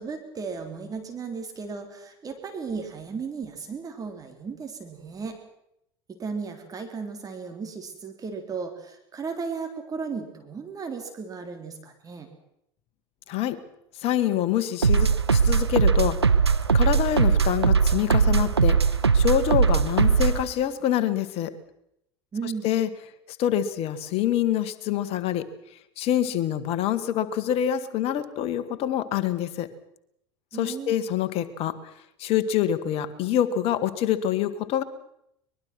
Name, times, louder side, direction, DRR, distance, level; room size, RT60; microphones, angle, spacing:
voice 1, 0.0-5.4 6.2-12.3 22.3-22.7 30.5-31.0, right 5 dB, 25° right, 4 dB, 3.6 m, -35 dB
voice 2, 13.3-13.6 14.0-16.2 16.7-21.5 22.6-22.9 23.4-25.5 26.0-29.7 30.6-31.9 32.2-34.8, left 11 dB, 50° left, 12 dB, 1.8 m, -26 dB
sound 1, 14.8-20.4, right 5 dB, 90° right, 0.9 m, -20 dB
23.0 x 21.5 x 6.1 m, 0.79 s
figure-of-eight pair, 75°, 13 cm